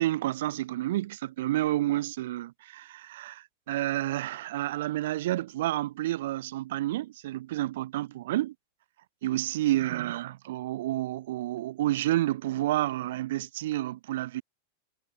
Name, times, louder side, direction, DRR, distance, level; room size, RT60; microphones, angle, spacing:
voice 1, 0.0-8.5 9.2-14.4, right 15 dB, 55° right, 1.9 m, -30 dB
figure-of-eight pair, 90°, 0 cm